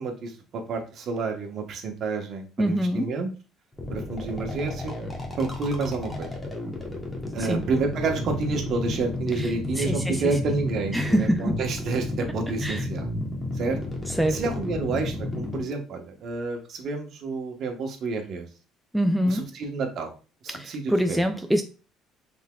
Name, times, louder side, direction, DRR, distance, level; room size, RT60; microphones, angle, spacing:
voice 1, 0.0-3.3 3.9-4.9 5.4-6.3 7.3-13.1 13.5-13.8 14.3-18.5 19.2-20.1 20.4-21.2, right 3 dB, 50° right, 1.0 m, -29 dB
voice 2, 2.6-3.1 7.4-7.6 9.4-9.5 9.8-10.2 10.9-11.6 12.6-12.8 14.2-14.4 18.9-19.4 20.5-21.6, equal, 5° right, 0.3 m, -24 dB
sound 1, 3.7-15.6, left 1 dB, 15° left, 1.1 m, -32 dB
5.6 x 3.4 x 2.3 m
cardioid pair, 130°, 0 cm